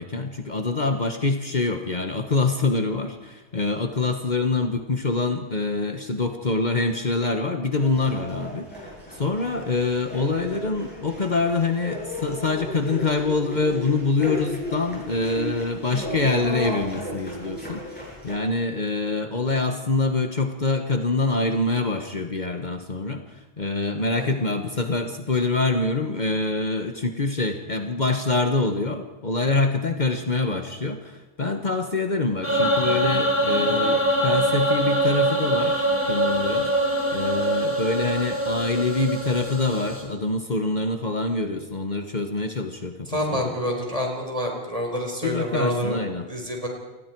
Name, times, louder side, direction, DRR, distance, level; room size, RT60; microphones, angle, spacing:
voice 1, 0.0-36.7 37.1-43.5 45.2-46.3, left 3 dB, 45° left, 6 dB, 1.3 m, -25 dB
sound 1, 7.8-18.3, left 1 dB, 10° left, 8.1 m, -35 dB
sound 2, 32.4-40.0, right 1 dB, 10° right, 5.8 m, -23 dB
voice 2, 43.1-46.0 46.3-46.7, equal, 35° right, 1 dB, 4.5 m, -27 dB
28.5 x 20.0 x 4.6 m, 1.2 s
omnidirectional pair, 1.1 m